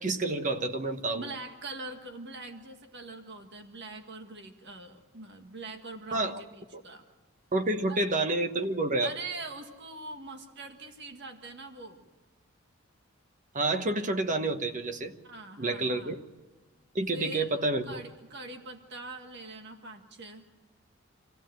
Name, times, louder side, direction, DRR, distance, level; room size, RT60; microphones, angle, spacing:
voice 1, 0.0-1.3 6.1-6.4 6.7-6.8 7.5-9.1 13.5-15.1 15.6-16.2 16.9-18.0, right 2 dB, 35° right, 1.2 m, -29 dB
voice 2, 1.1-7.0 7.9-8.0 9.0-12.0 15.2-16.1 17.1-17.5 17.8-20.4, right 3 dB, 55° right, 1.8 m, -43 dB
26.5 x 16.0 x 7.7 m
head